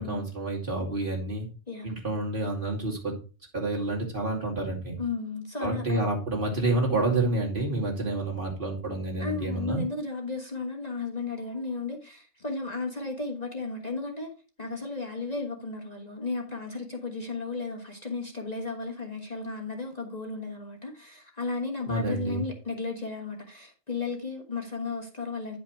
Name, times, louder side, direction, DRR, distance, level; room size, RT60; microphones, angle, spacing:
voice 1, 0.0-1.5 1.8-3.1 3.5-5.0 5.6-9.8 21.9-22.4, right 2 dB, 45° right, 2.7 m, -29 dB
voice 2, 5.0-6.0 9.2-14.3 14.6-25.6, left 3 dB, 35° left, 1.5 m, -34 dB
10.0 x 5.2 x 4.6 m
omnidirectional pair, 1.3 m